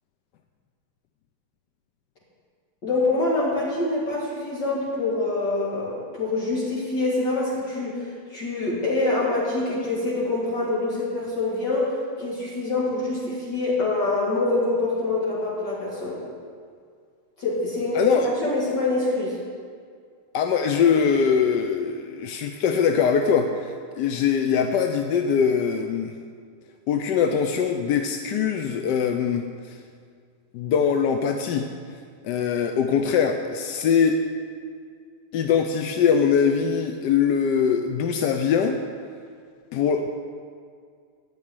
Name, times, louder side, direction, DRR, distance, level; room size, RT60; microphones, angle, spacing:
voice 1, 2.8-16.2 17.4-19.4, left 2 dB, 55° left, -6 dB, 2.7 m, -25 dB
voice 2, 18.0-18.3 20.3-26.1 26.9-29.8 30.5-31.7 32.2-34.3 35.3-38.8 39.7-40.1, left 7 dB, 70° left, 5 dB, 1.1 m, -22 dB
15.0 x 5.4 x 9.4 m, 2.1 s
omnidirectional pair, 2.4 m